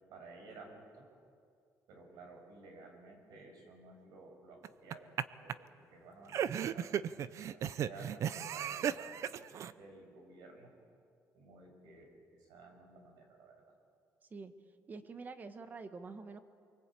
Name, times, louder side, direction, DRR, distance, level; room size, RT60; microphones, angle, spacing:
voice 1, 0.1-1.1 1.9-7.0 7.5-10.7 11.3-13.6, right 3 dB, 80° right, 3 dB, 6.5 m, -55 dB
sound 1, 4.6-5.2 5.5-5.6 6.3-9.7, right 9 dB, 50° right, 0.7 m, -35 dB
voice 2, 14.9-16.4, right 4 dB, 25° right, 9 dB, 1.4 m, -46 dB
24.5 x 23.5 x 8.6 m, 2.3 s
cardioid pair, 155°, 6 cm